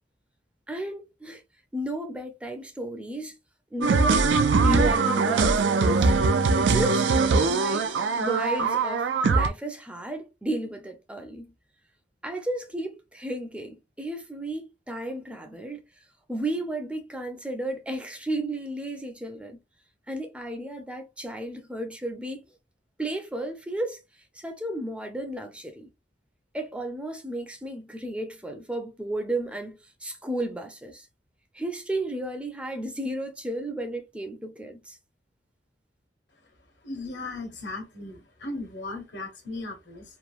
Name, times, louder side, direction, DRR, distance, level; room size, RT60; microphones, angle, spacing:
voice 1, 0.7-1.4 1.7-3.4 3.7-4.3 4.6-6.1 6.7-7.1 7.6-7.9 8.2-11.5 12.2-15.8 16.3-19.6 20.1-22.4 23.0-24.0 24.3-25.9 26.5-31.1 31.5-35.0, right 1 dB, 5° right, 0.4 m, -33 dB
sound 1, 3.8-9.5, right 4 dB, 90° right, 0.4 m, -22 dB
voice 2, 36.8-40.0, left 2 dB, 80° left, 1.3 m, -37 dB
3.0 x 2.1 x 2.4 m
head